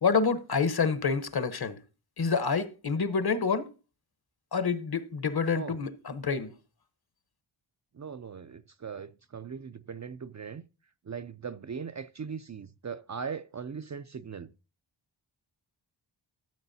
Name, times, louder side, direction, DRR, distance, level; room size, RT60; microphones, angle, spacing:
voice 1, 0.0-1.8 2.2-3.7 4.5-6.5, left 5 dB, 50° left, 1.0 m, -28 dB
voice 2, 7.9-10.6 11.0-14.5, right 6 dB, 40° right, 0.4 m, -39 dB
13.5 x 7.8 x 2.7 m
wide cardioid pair, 85°, 47 cm